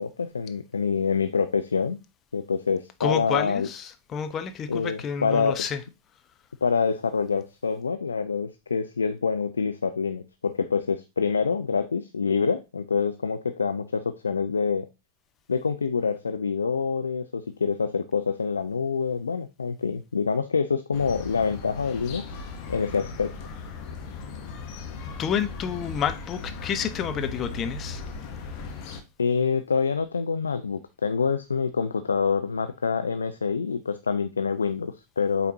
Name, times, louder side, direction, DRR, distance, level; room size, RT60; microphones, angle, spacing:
voice 1, 0.0-2.0 2.3-3.7 4.7-5.6 6.6-14.9 15.5-22.3 22.7-23.3 29.2-35.5, left 5 dB, 75° left, 0.4 m, -26 dB
voice 2, 3.0-5.8 25.2-28.0, left 8 dB, 30° left, 0.7 m, -29 dB
sound 1, 20.9-29.0, left 4 dB, 45° left, 1.2 m, -38 dB
8.2 x 4.1 x 2.8 m
figure-of-eight pair, 90°, 0 cm